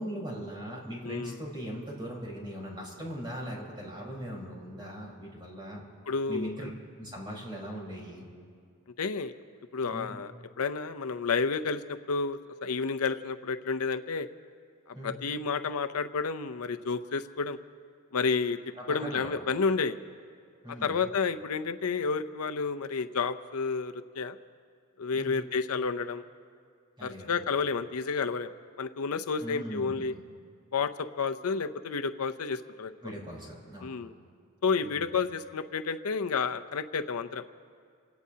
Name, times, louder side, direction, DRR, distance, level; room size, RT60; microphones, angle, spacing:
voice 1, 0.0-5.8 6.3-6.7 7.0-8.3 9.9-10.1 14.9-15.2 18.8-19.4 20.6-21.0 25.2-25.3 27.0-27.4 29.4-30.1 33.0-33.9 34.8-35.2, equal, 20° right, -4 dB, 4.3 m, -39 dB
voice 2, 1.0-1.4 6.1-6.7 9.0-9.3 9.7-10.3 10.6-14.3 15.0-17.6 18.1-18.6 18.9-20.0 20.8-24.3 25.0-26.2 27.0-28.5 28.8-30.1 30.7-32.9 33.8-34.1 34.6-37.4, left 5 dB, 85° left, 9 dB, 0.6 m, -30 dB
28.5 x 17.5 x 2.8 m, 2.2 s
head